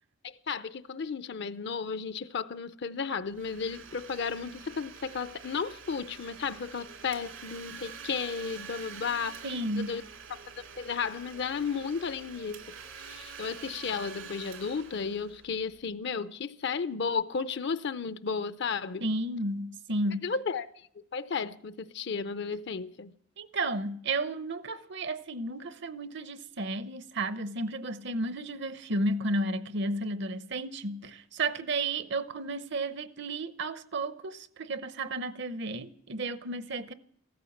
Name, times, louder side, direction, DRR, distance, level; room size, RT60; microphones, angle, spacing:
voice 1, 0.2-9.4 9.7-10.0 10.3-10.4 10.8-12.6 13.0-19.0 20.2-20.7 21.1-23.1, left 5 dB, 55° left, 0.5 m, -33 dB
Domestic sounds home sounds, 3.3-15.9, right 6 dB, 80° right, 2.6 m, -47 dB
voice 2, 9.4-9.9 19.0-20.2 23.4-36.9, right 2 dB, 60° right, 0.8 m, -33 dB
15.0 x 13.5 x 7.2 m
head